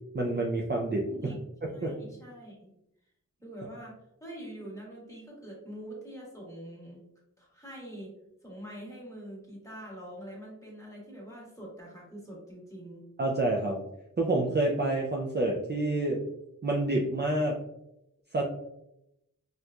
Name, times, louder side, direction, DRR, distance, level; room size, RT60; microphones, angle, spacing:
voice 1, 0.1-1.3 1.8-1.9 13.2-13.8 14.2-16.2 16.6-17.6 18.3-18.4, right 2 dB, 35° right, -1 dB, 0.5 m, -28 dB
voice 2, 1.1-1.4 1.7-2.7 3.4-7.0 7.4-8.1 8.4-13.0, right 1 dB, 10° left, -4 dB, 1.5 m, -44 dB
4.3 x 2.5 x 2.3 m, 0.83 s
wide cardioid pair, 55°, 32 cm